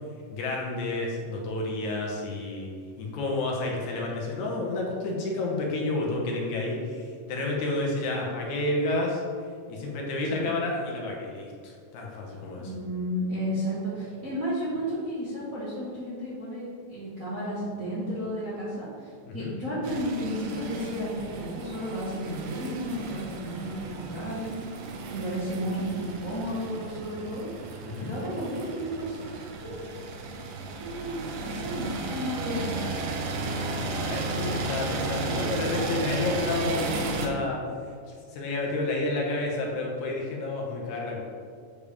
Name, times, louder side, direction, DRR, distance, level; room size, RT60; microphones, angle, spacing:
voice 1, 0.3-9.2 9.7-12.7 19.3-19.5 27.8-28.1 33.7-37.6 38.3-41.2, left 2 dB, 70° left, -2 dB, 2.3 m, -30 dB
voice 2, 12.5-27.5 28.0-29.9 30.8-32.8, equal, 50° right, -10 dB, 1.0 m, -33 dB
sound 1, 19.8-37.3, right 3 dB, 85° right, 2.3 m, -34 dB
8.3 x 3.4 x 5.0 m, 2.1 s
omnidirectional pair, 3.7 m